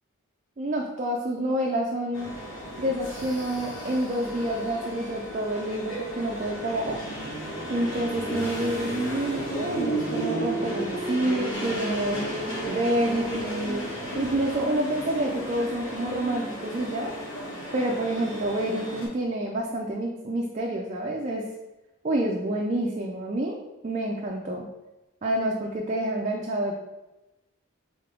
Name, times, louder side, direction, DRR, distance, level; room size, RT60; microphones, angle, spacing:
voice 1, 0.6-2.4 2.8-7.0 7.7-12.2 12.7-13.9 14.2-17.1 17.7-21.4 22.0-23.6 23.8-24.7 25.2-26.7, right 1 dB, 35° right, -1 dB, 0.4 m, -28 dB
sound 1, 2.1-19.1, right 1 dB, 60° left, 1.4 m, -33 dB
3.7 x 3.6 x 3.4 m, 1.0 s
head